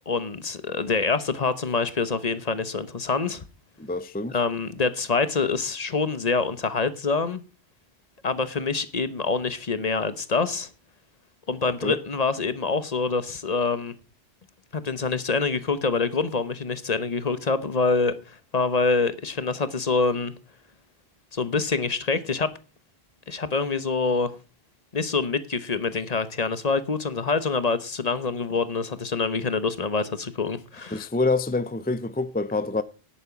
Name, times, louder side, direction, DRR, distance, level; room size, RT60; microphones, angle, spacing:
voice 1, 0.1-3.4 4.3-7.4 8.2-10.7 11.5-13.9 14.7-20.3 21.3-22.5 23.3-24.3 24.9-31.1, left 4 dB, 40° left, 1.0 m, -26 dB
voice 2, 3.8-4.4 11.8-12.0 30.9-32.8, left 3 dB, 15° left, 0.3 m, -26 dB
10.5 x 8.9 x 5.9 m
omnidirectional pair, 1.1 m